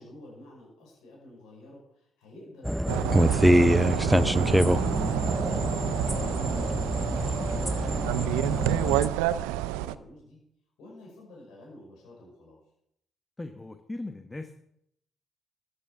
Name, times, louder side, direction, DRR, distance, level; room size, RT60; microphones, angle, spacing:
voice 1, 0.0-5.5 6.1-10.4 10.8-12.6, left 1 dB, 70° left, -3 dB, 5.4 m, -50 dB
sound 1, 2.6-9.1, equal, ahead, 0.5 m, -25 dB
sound 2, 2.9-10.0, right 14 dB, 80° right, 0.4 m, -29 dB
voice 2, 13.4-14.6, left 2 dB, 20° left, 8 dB, 1.1 m, -38 dB
13.0 x 8.5 x 6.0 m, 0.73 s
hypercardioid pair, 45°, 0 cm